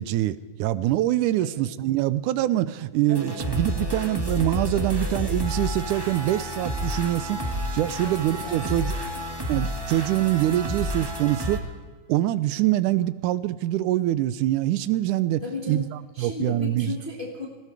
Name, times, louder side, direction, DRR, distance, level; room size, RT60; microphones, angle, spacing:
voice 1, 0.0-8.9 9.5-11.6 12.1-15.4 15.7-15.9 16.2-16.9, right 14 dB, 90° right, 16 dB, 2.1 m, -24 dB
voice 2, 3.1-3.5 8.0-9.5 15.4-17.5, left 3 dB, 20° left, -1 dB, 1.8 m, -36 dB
sound 1, 3.1-11.6, equal, 15° right, 0.7 m, -30 dB
19.5 x 15.5 x 4.8 m, 1.5 s
omnidirectional pair, 3.5 m